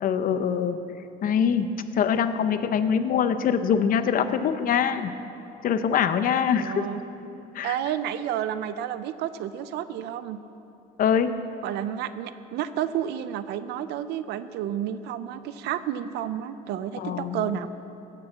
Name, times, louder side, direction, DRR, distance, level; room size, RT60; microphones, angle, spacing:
voice 1, 0.0-0.8 1.2-5.1 5.6-6.8 7.5-7.8 11.0-11.3 17.0-17.5, left 7 dB, 55° left, 10 dB, 0.8 m, -24 dB
voice 2, 6.6-7.0 7.6-10.4 11.6-17.7, right 10 dB, 80° right, 13 dB, 0.6 m, -31 dB
16.5 x 7.0 x 6.9 m, 2.8 s
cardioid pair, 110°, 17 cm